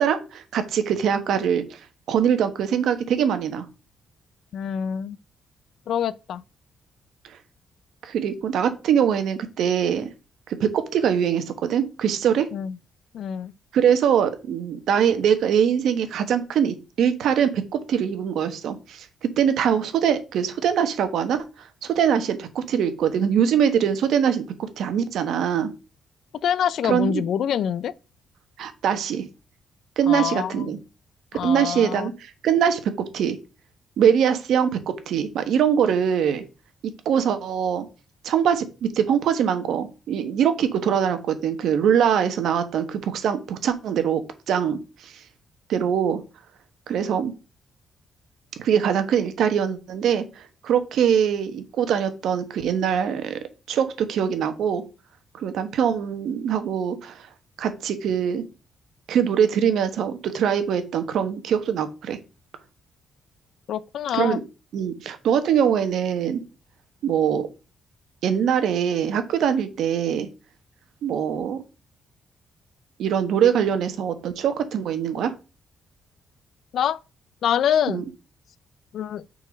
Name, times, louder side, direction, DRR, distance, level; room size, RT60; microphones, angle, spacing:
voice 1, 0.0-1.8 2.1-3.7 8.0-10.1 10.5-12.5 13.7-19.1 19.4-21.5 21.8-25.7 26.8-27.2 28.6-29.3 30.0-30.8 31.4-33.4 34.0-36.4 36.8-37.9 38.2-44.2 44.5-45.1 45.7-46.2 46.9-47.3 48.6-53.4 53.7-54.8 55.4-57.3 57.6-58.4 59.1-62.2 64.1-64.4 64.7-66.4 67.0-67.5 68.2-70.3 71.0-71.6 73.0-75.3 77.9-78.0, right 8 dB, 75° right, 1.2 m, -23 dB
voice 2, 4.5-5.2 5.9-6.4 12.5-12.7 13.1-13.5 26.4-27.9 30.1-30.7 31.3-32.1 63.7-64.4 76.7-77.0 77.4-78.0 78.9-79.2, left 9 dB, 65° left, 0.4 m, -25 dB
6.3 x 4.1 x 5.2 m
cardioid pair, 145°, 0 cm